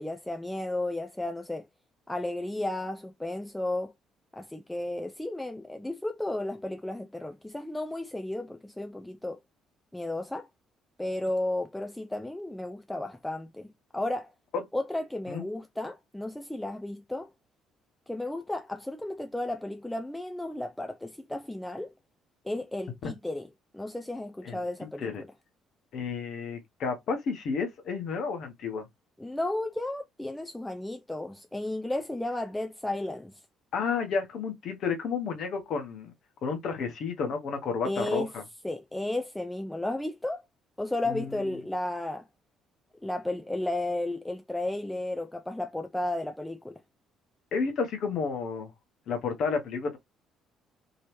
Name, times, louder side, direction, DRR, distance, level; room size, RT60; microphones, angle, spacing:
voice 1, 0.0-1.7 2.1-3.9 4.3-9.4 9.9-10.5 11.0-13.7 13.9-14.3 14.7-17.3 18.1-21.9 22.4-23.5 23.7-25.1 29.2-33.3 37.8-38.3 38.6-40.4 40.8-42.2 43.0-46.8, left 1 dB, 5° left, 0.4 m, -33 dB
voice 2, 24.4-25.2 25.9-28.8 33.7-36.1 36.4-38.4 41.0-41.5 47.5-48.7 49.1-50.0, left 5 dB, 50° left, 1.0 m, -31 dB
3.0 x 2.9 x 3.0 m
figure-of-eight pair, 50°, 0 cm